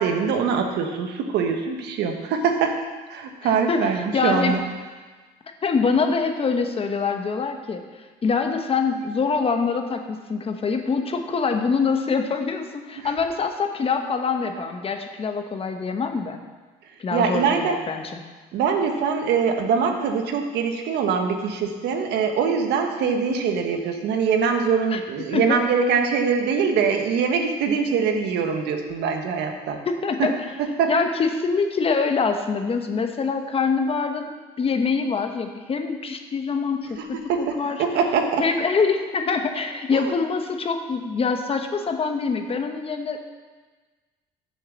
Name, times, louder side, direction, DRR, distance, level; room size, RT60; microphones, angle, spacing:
voice 1, 0.0-2.7 3.1-4.6 13.0-13.1 17.1-17.8 18.5-29.8 30.2-30.3 30.6-30.9 37.3-38.4 39.9-40.0, right 6 dB, 80° right, 4 dB, 1.3 m, -23 dB
voice 2, 3.4-4.6 5.6-7.8 8.2-16.4 17.0-18.2 24.9-25.6 29.8-30.5 30.9-37.8 38.4-43.2, left 5 dB, 35° left, 6 dB, 1.0 m, -25 dB
7.5 x 7.0 x 7.4 m, 1.3 s
cardioid pair, 110°, 17 cm